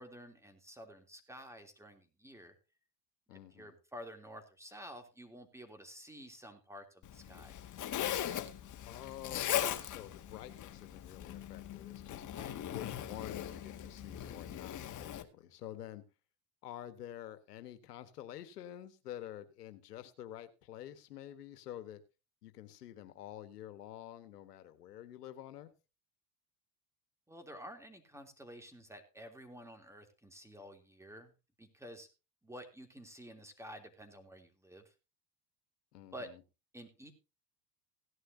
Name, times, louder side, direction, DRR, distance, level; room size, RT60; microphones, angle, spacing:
voice 1, 0.0-2.5 3.3-7.6 12.3-12.6 27.3-31.3 31.6-32.1 32.4-34.9 36.1-36.3 36.7-37.1, equal, 5° right, 3.1 m, -51 dB
voice 2, 3.3-3.8 8.8-12.2 12.7-16.0 16.6-22.0 22.4-25.7 35.9-36.4, left 12 dB, 90° left, 1.5 m, -49 dB
Zipper (clothing), 7.0-15.2, left 11 dB, 40° left, 1.7 m, -39 dB
16.5 x 11.5 x 2.8 m
hypercardioid pair, 90°, 46 cm